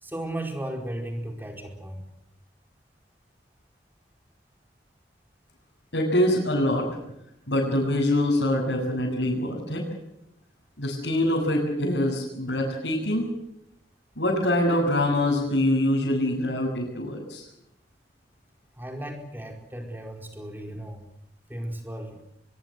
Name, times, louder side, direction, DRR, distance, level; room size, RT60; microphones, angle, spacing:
voice 1, 0.0-2.1 18.7-21.0 21.5-22.2, right 1 dB, 10° right, 3 dB, 4.7 m, -35 dB
voice 2, 5.9-6.9 7.5-9.8 10.8-13.3 14.2-17.4, left 1 dB, 85° left, -4 dB, 7.6 m, -24 dB
23.0 x 22.5 x 8.0 m, 0.81 s
head